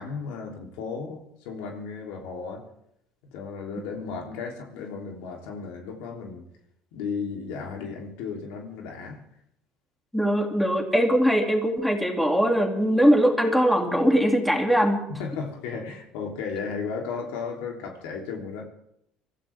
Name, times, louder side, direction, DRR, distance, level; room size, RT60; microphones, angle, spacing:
voice 1, 0.0-2.6 3.3-6.5 6.9-9.2 15.1-18.6, left 5 dB, 85° left, 1 dB, 3.3 m, -34 dB
voice 2, 10.1-15.0, equal, 5° left, 2 dB, 2.6 m, -21 dB
24.0 x 14.5 x 3.6 m, 0.77 s
supercardioid pair, 100°, 2 cm